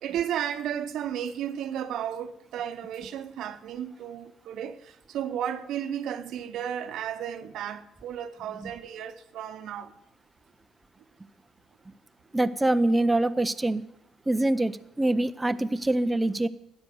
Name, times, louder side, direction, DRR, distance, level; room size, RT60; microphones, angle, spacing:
voice 1, 0.0-9.9, right 9 dB, 75° right, 0.9 m, -33 dB
voice 2, 12.3-13.8 14.3-16.5, right 1 dB, 15° right, 0.6 m, -24 dB
13.0 x 9.1 x 7.0 m
supercardioid pair, 75°, 0 cm